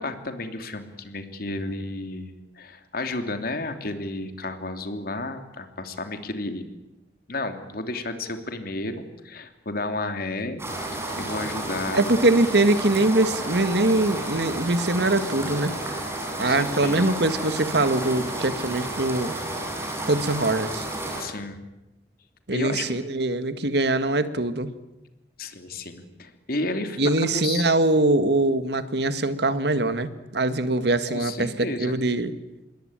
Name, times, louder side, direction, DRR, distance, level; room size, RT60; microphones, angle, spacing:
voice 1, 0.0-6.6 7.3-10.6 11.2-12.1 16.4-17.1 21.1-21.6 22.5-22.9 25.4-27.7 31.1-32.0, left 2 dB, 55° left, 7 dB, 3.0 m, -32 dB
sound 1, 10.6-21.2, right 1 dB, 15° right, 7.5 m, -31 dB
voice 2, 11.9-15.7 16.4-19.3 20.0-20.8 22.5-24.7 27.0-32.3, right 2 dB, 65° right, 11 dB, 1.8 m, -23 dB
27.0 x 22.0 x 9.0 m, 0.99 s
head